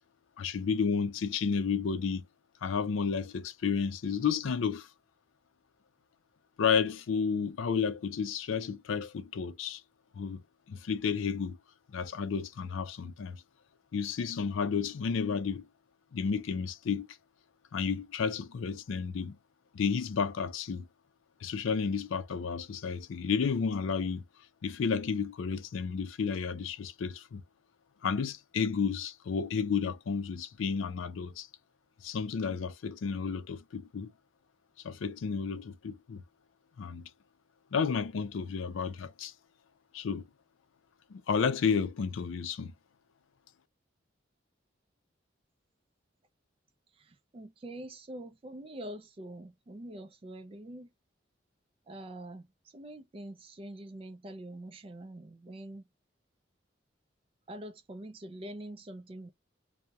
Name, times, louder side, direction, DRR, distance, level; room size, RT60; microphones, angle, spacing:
voice 1, 0.4-2.2 2.6-4.9 6.6-9.8 10.1-11.6 11.9-13.4 13.9-15.7 16.1-17.1 17.7-19.4 19.7-20.9 21.4-24.2 24.6-27.4 28.0-31.5 32.0-34.1 34.8-36.2 36.8-37.1 37.7-39.3 39.9-40.3 41.1-42.7, left 6 dB, 85° left, 0.4 m, -32 dB
voice 2, 47.3-50.9 51.9-52.4 52.7-55.8 57.5-59.3, right 1 dB, 30° right, 0.3 m, -44 dB
2.6 x 2.1 x 2.3 m
head